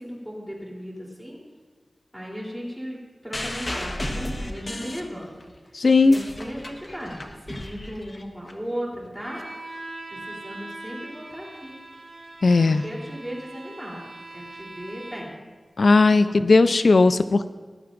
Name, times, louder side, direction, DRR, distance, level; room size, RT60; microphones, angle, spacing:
voice 1, 0.0-1.4 2.1-5.3 6.0-7.2 7.5-9.4 10.1-11.8 12.4-14.0 14.3-15.3 16.1-16.3, equal, ahead, -4 dB, 3.3 m, -36 dB
sound 1, 3.3-5.5 5.9-8.5 9.4-9.5, left 1 dB, 40° left, 1.1 m, -34 dB
voice 2, 5.7-6.2 12.4-12.8 15.8-17.5, left 3 dB, 75° left, 12 dB, 0.4 m, -17 dB
Bowed string instrument, 9.2-15.5, right 2 dB, 70° right, 3.8 m, -41 dB
19.0 x 11.0 x 2.6 m, 1.4 s
wide cardioid pair, 75°, 0 cm